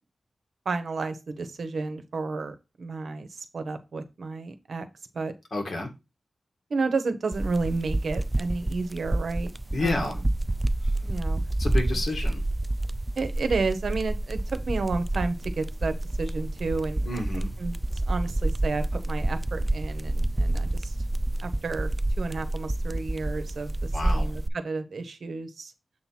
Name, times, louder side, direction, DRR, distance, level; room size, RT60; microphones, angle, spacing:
voice 1, 0.6-4.9 5.1-5.3 6.7-9.5 9.8-10.1 11.0-11.4 13.2-17.2 17.6-17.8 18.1-21.0 21.4-21.9 22.2-25.7, right 3 dB, 75° right, 0.8 m, -31 dB
voice 2, 5.5-5.9 9.7-10.2 10.8-10.9 11.6-12.4 17.1-17.5 23.9-24.3, left 2 dB, 65° left, 1.9 m, -30 dB
sound 1, 7.3-24.5, right 1 dB, 20° right, 0.3 m, -28 dB
7.6 x 3.0 x 5.7 m
wide cardioid pair, 80°, 0 cm